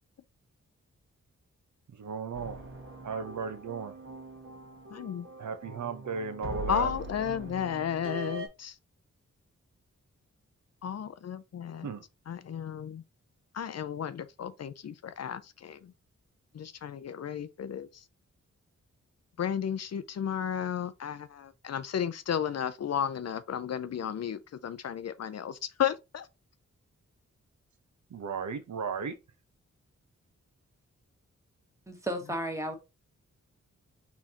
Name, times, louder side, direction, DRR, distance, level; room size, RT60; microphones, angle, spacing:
voice 1, 1.9-2.6 3.0-3.9 5.4-6.9 11.8-12.0 28.1-29.2, right 5 dB, 75° right, 0.9 m, -35 dB
sound 1, 2.3-8.5, right 1 dB, 45° right, 1.3 m, -42 dB
voice 2, 4.9-5.3 6.7-8.7 10.8-11.9 12.3-13.0 13.5-15.8 16.5-17.9 19.4-26.3, left 8 dB, 60° left, 0.5 m, -33 dB
voice 3, 31.9-32.8, right 1 dB, 10° right, 1.4 m, -33 dB
4.2 x 4.0 x 2.9 m
wide cardioid pair, 125°, 29 cm